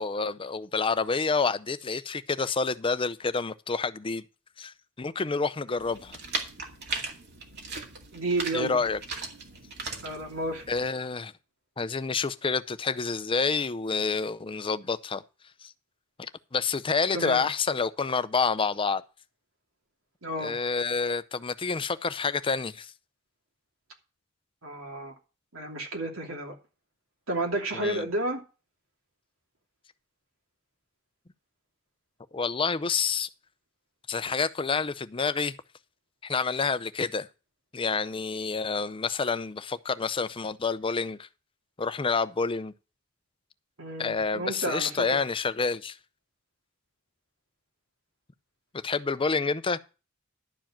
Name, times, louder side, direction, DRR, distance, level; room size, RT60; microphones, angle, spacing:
voice 1, 0.0-4.2 4.6-6.2 8.5-9.0 10.7-11.3 11.8-15.2 15.6-15.7 16.2-19.0 20.4-22.9 27.8-28.0 32.3-33.3 34.1-35.5 36.2-37.3 37.7-41.3 41.8-42.7 44.0-46.0 48.8-49.8, left 4 dB, 25° left, 0.6 m, -28 dB
sound 1, 5.8-10.9, right 4 dB, 55° right, 2.3 m, -38 dB
voice 2, 8.1-8.8 10.0-10.6 17.1-17.5 20.2-20.5 24.6-25.1 25.5-26.5 27.3-28.4 43.8-45.2, right 1 dB, 85° right, 2.9 m, -31 dB
11.5 x 4.8 x 7.4 m
head